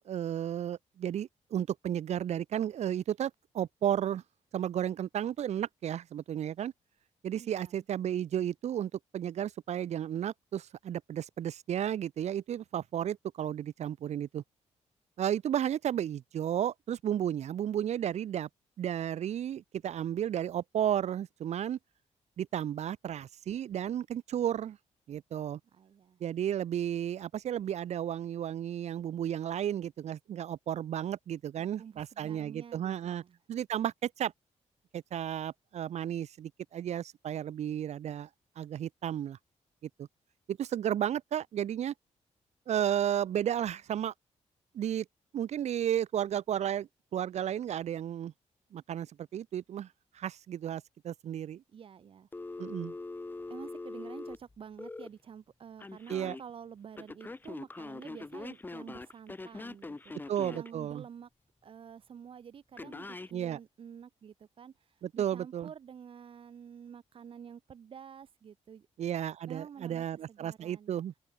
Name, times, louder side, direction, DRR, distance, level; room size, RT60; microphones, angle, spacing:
voice 1, 0.0-4.2 4.5-6.7 7.2-14.4 15.2-18.5 18.8-21.8 22.4-24.8 25.1-25.6 26.2-33.2 33.5-34.3 34.9-38.3 38.6-39.4 40.0-40.1 40.5-41.9 42.7-44.1 44.7-45.1 45.3-48.3 48.7-49.9 50.2-51.6 52.6-52.9 56.1-56.4 60.3-61.0 63.3-63.6 65.0-65.7 69.0-71.1, right 10 dB, 65° right, 2.1 m, -33 dB
voice 2, 7.4-7.8 25.7-26.2 31.6-33.4 51.7-52.6 53.5-60.1 60.5-61.3 61.6-64.7 65.1-68.9 69.5-71.0, right 7 dB, 50° right, 3.7 m, -49 dB
Telephone, 52.3-55.1 55.8-56.4 57.0-60.7 62.8-63.3, left 3 dB, 15° left, 7.8 m, -42 dB
open air
wide cardioid pair, 165°, 12 cm